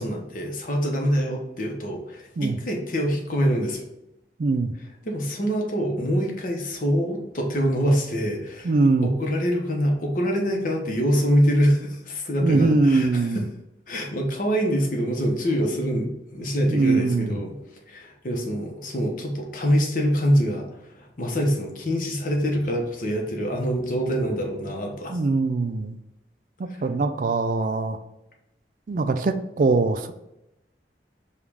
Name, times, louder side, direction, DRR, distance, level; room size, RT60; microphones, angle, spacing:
voice 1, 0.0-3.9 5.0-8.7 9.0-13.4 13.9-17.5 17.9-20.7 20.9-25.2, equal, 50° left, 1 dB, 0.8 m, -25 dB
voice 2, 4.4-4.7 8.6-9.1 12.4-13.4 16.7-17.3 25.1-26.0 26.8-28.0 28.9-30.1, right 3 dB, 50° right, 10 dB, 0.3 m, -22 dB
5.0 x 2.4 x 3.4 m, 0.89 s
head